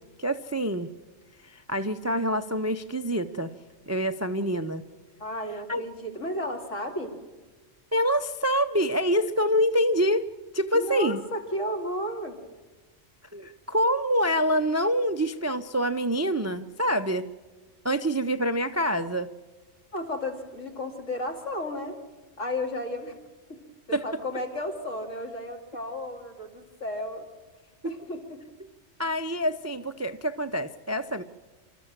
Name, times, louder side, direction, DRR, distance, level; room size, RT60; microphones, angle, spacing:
voice 1, 0.2-0.9 1.4-3.5 3.9-4.8 5.7-5.8 7.9-10.3 10.5-11.2 13.3-17.3 17.8-19.3 23.9-24.0 27.8-27.9 29.0-31.2, equal, 25° right, 10 dB, 0.3 m, -26 dB
voice 2, 5.2-7.1 10.7-12.4 19.9-22.0 22.4-23.2 23.9-27.3 27.8-28.4, left 1 dB, 80° left, 2 dB, 2.9 m, -33 dB
27.5 x 13.0 x 7.3 m, 1.3 s
omnidirectional pair, 1.3 m